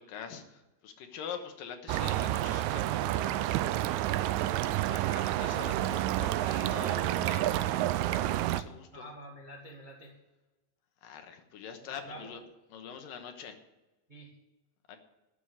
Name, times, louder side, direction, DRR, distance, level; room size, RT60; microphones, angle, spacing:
voice 1, 0.0-3.8 4.1-9.1 11.0-12.4 12.7-13.6 14.9-15.0, left 7 dB, 85° left, 6 dB, 3.0 m, -45 dB
sound 1, 1.9-8.6, right 14 dB, 90° right, 1.6 m, -29 dB
voice 2, 8.9-10.2 11.8-12.3 14.1-14.4, right 1 dB, 25° right, -1 dB, 1.0 m, -47 dB
13.0 x 6.6 x 9.6 m, 1.1 s
omnidirectional pair, 3.9 m